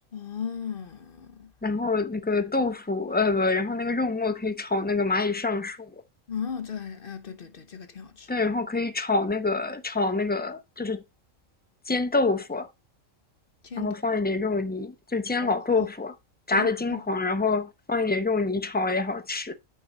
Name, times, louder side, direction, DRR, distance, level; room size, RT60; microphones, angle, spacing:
voice 1, 0.1-1.5 6.3-8.3 13.6-13.9 15.4-15.9 16.5-17.0, left 6 dB, 50° left, 1.0 m, -36 dB
voice 2, 1.6-6.0 8.3-11.0 11.9-12.7 13.8-16.2 16.5-19.5, left 3 dB, 15° left, 0.4 m, -26 dB
8.9 x 4.6 x 3.9 m
omnidirectional pair, 1.3 m